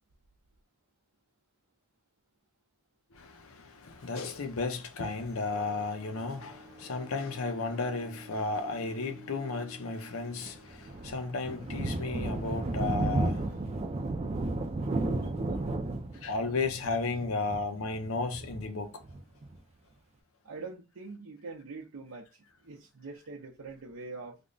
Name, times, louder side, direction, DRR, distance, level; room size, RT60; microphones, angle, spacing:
voice 1, 3.1-13.6 15.5-15.6 16.2-18.9, left 3 dB, 80° left, 0.7 m, -34 dB
sound 1, 5.5-11.9, equal, 5° right, 0.8 m, -52 dB
Thunder, 10.4-19.6, right 2 dB, 30° right, 0.4 m, -33 dB
voice 2, 20.4-24.4, right 3 dB, 80° right, 0.6 m, -44 dB
3.5 x 2.1 x 3.8 m
head